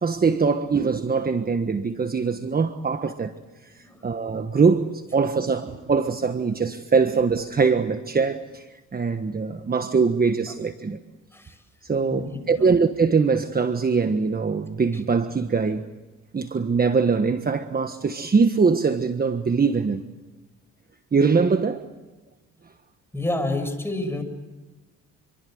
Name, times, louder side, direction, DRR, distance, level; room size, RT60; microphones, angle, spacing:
voice 1, 0.0-3.3 3.7-11.0 11.8-15.8 16.3-20.0 21.1-21.9, right 5 dB, 30° right, 1.4 m, -22 dB
voice 2, 12.0-12.8 23.1-24.2, left 2 dB, 10° left, 6.5 m, -29 dB
28.0 x 24.0 x 7.9 m
cardioid pair, 90°, 30 cm